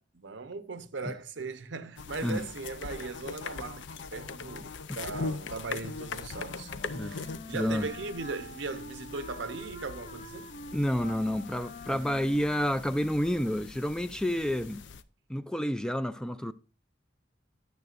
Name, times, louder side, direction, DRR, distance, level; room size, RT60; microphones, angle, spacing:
voice 1, 0.0-10.5, right 4 dB, 75° right, 0.8 m, -39 dB
sound 1, 2.0-15.0, left 4 dB, 70° left, 0.5 m, -41 dB
Wind instrument woodwind instrument, 6.3-13.8, left 1 dB, 50° left, 1.0 m, -47 dB
voice 2, 7.5-7.9 10.7-14.8 15.3-16.5, equal, 5° left, 0.4 m, -29 dB
9.8 x 9.3 x 2.5 m
head